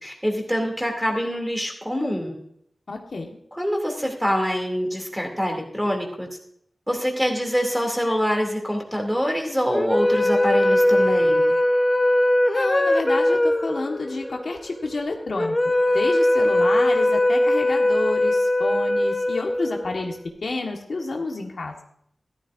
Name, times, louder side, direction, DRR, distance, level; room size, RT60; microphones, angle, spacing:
voice 1, 0.0-2.4 3.6-6.3 6.9-11.5, equal, 5° right, 2 dB, 2.6 m, -25 dB
voice 2, 2.9-3.4 12.5-15.5 15.9-21.8, left 3 dB, 70° left, 1 dB, 1.4 m, -29 dB
sound 1, 9.7-20.1, left 1 dB, 25° left, 0.9 m, -20 dB
13.5 x 12.5 x 2.6 m, 0.71 s
wide cardioid pair, 70°, 0 cm